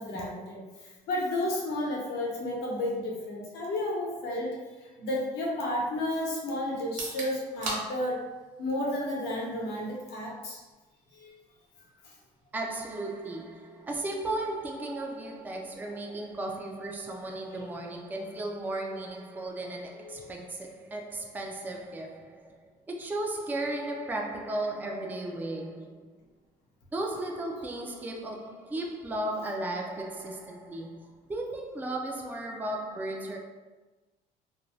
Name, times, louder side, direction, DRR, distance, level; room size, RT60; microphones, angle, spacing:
voice 1, 0.0-8.2 8.6-10.6 11.1-11.3 12.0-12.1 17.5-17.6 20.0-20.3, left 1 dB, 80° left, 0.9 m, -32 dB
sound 1, 6.8-20.7, right 2 dB, 45° right, 1.0 m, -46 dB
voice 2, 12.5-26.1 26.9-33.4, right 1 dB, 10° right, 0.3 m, -35 dB
2.6 x 2.2 x 3.1 m
cardioid pair, 110°, 17 cm